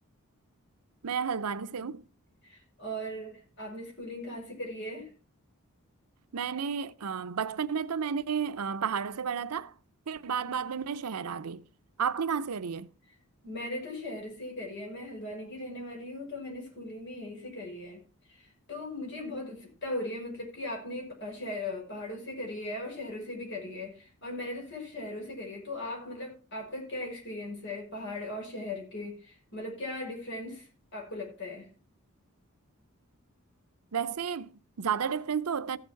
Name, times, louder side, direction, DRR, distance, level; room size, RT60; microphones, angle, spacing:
voice 1, 1.0-2.0 6.3-9.7 10.1-11.6 12.0-12.9 33.9-35.8, right 6 dB, 90° right, 0.6 m, -32 dB
voice 2, 2.4-5.1 13.4-18.0 18.3-31.7, left 1 dB, 55° left, 5.5 m, -38 dB
14.5 x 7.3 x 4.5 m
head